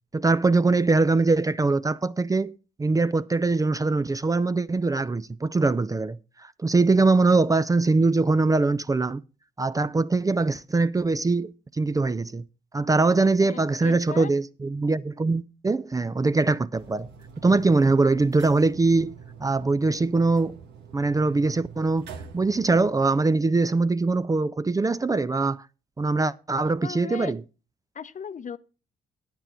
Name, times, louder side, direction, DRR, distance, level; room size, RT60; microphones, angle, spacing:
voice 1, 0.1-9.2 9.6-12.4 12.7-17.1 17.4-19.1 19.4-20.6 20.9-22.1 22.3-25.6 26.0-27.4, right 3 dB, 20° right, 0.4 m, -22 dB
voice 2, 13.4-14.3 26.8-27.3 27.9-28.6, left 7 dB, 45° left, 0.8 m, -37 dB
sound 1, 16.7-22.9, right 6 dB, 75° right, 1.3 m, -45 dB
9.0 x 8.9 x 4.4 m
hypercardioid pair, 50°, 18 cm